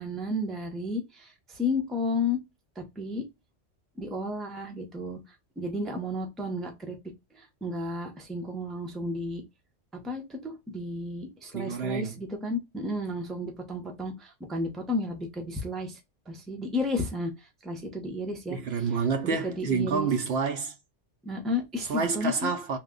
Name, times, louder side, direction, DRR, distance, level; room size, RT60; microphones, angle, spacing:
voice 1, 0.0-2.4 3.0-3.2 4.0-5.2 5.6-7.0 7.3-9.4 10.0-16.0 16.3-17.3 17.6-20.1 21.2-22.5, left 2 dB, ahead, 0.5 m, -32 dB
voice 2, 11.5-12.1 18.5-20.7 21.9-22.8, right 5 dB, 65° right, 0.7 m, -28 dB
3.0 x 2.1 x 3.6 m
omnidirectional pair, 1.3 m